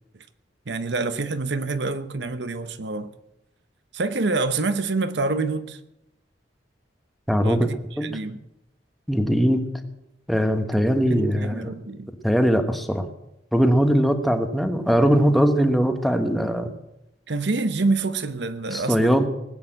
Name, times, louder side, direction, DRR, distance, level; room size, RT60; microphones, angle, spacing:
voice 1, 0.7-3.1 3.9-5.8 7.4-8.4 11.1-12.1 17.3-19.3, right 3 dB, 70° right, 0.9 m, -27 dB
voice 2, 7.3-7.7 8.0-8.2 9.1-9.6 10.3-11.7 12.2-13.1 13.5-16.7 18.7-19.3, equal, ahead, 1.3 m, -20 dB
19.5 x 8.3 x 8.0 m
head